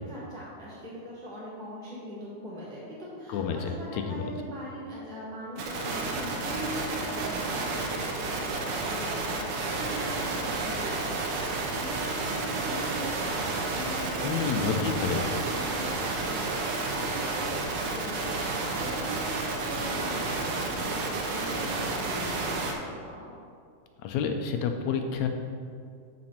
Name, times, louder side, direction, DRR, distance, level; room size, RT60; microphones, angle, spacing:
voice 1, 0.0-23.2, equal, ahead, -8 dB, 1.8 m, -41 dB
voice 2, 3.3-4.2 14.2-15.2 24.0-25.3, left 6 dB, 75° left, 5 dB, 1.9 m, -29 dB
sound 1, 5.6-22.7, right 3 dB, 85° right, 2.5 m, -31 dB
12.5 x 5.2 x 4.4 m, 2.3 s
omnidirectional pair, 3.6 m